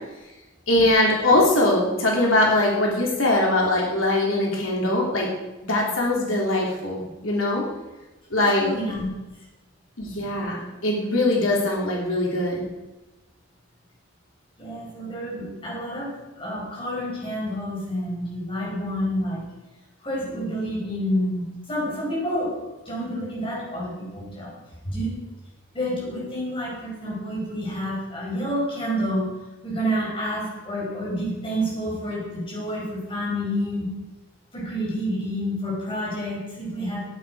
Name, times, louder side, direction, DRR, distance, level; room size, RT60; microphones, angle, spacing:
voice 1, 0.7-5.3 5.6-7.6 8.3-8.7 10.0-12.6 24.9-25.0, left 1 dB, 85° left, -2 dB, 3.1 m, -22 dB
voice 2, 8.3-9.0 14.6-19.4 20.0-22.6 22.8-24.6 24.9-25.2 25.7-29.3 29.6-33.9 34.5-37.1, equal, 25° left, -4 dB, 5.1 m, -29 dB
14.5 x 9.5 x 4.9 m, 1.1 s
head